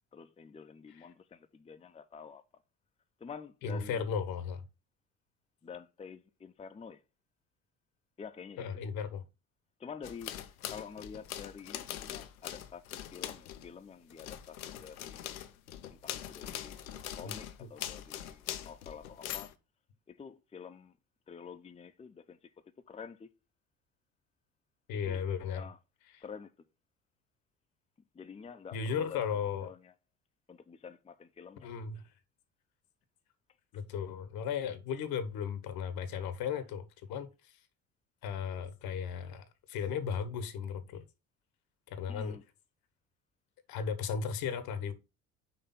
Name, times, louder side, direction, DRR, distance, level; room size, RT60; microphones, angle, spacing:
voice 1, 0.1-2.4 3.2-4.1 5.6-7.0 8.2-8.9 9.8-10.3 10.7-15.4 15.9-16.8 17.1-19.5 20.1-20.9 21.3-22.5 22.9-23.3 25.1-25.2 25.5-25.8 26.2-26.5 28.1-29.9 30.5-31.7 42.1-42.4, left 6 dB, 15° left, 0.6 m, -48 dB
voice 2, 3.6-4.6 8.6-9.2 17.2-17.3 17.6-17.7 24.9-25.7 26.1-26.2 28.7-29.7 31.6-32.0 33.7-37.5 38.2-41.0 41.9-42.4 43.7-44.9, left 7 dB, 55° left, 1.2 m, -36 dB
sound 1, 10.0-13.7 14.1-19.5, left 11 dB, 80° left, 0.8 m, -42 dB
5.8 x 3.4 x 5.7 m
hypercardioid pair, 60°, 42 cm